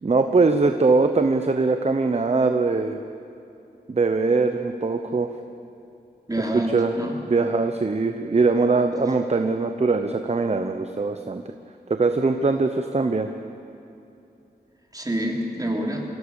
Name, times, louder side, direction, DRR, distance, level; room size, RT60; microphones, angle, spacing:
voice 1, 0.0-3.0 3.9-5.3 6.7-6.9 7.3-11.4 11.9-13.3, right 3 dB, 40° right, 7 dB, 0.9 m, -21 dB
voice 2, 6.3-7.2 14.9-16.0, right 1 dB, 20° right, 0 dB, 3.3 m, -27 dB
24.5 x 16.5 x 7.2 m, 2.8 s
wide cardioid pair, 105°, 17 cm